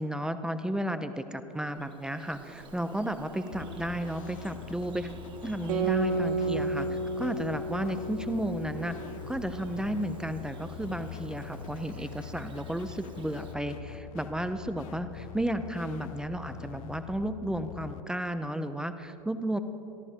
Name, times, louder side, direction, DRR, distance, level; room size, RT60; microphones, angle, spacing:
voice 1, 0.0-5.1 5.4-9.0 9.3-19.6, right 1 dB, 5° right, 10 dB, 0.4 m, -33 dB
Bird vocalization bird call bird song, 1.5-13.5, right 4 dB, 25° right, 1.0 m, -50 dB
sound 1, 3.5-18.0, left 11 dB, 55° left, 0.4 m, -44 dB
Guitar, 5.7-10.6, right 3 dB, 55° right, 1.4 m, -33 dB
28.0 x 11.5 x 2.6 m, 2.9 s
figure-of-eight pair, 85°, 21 cm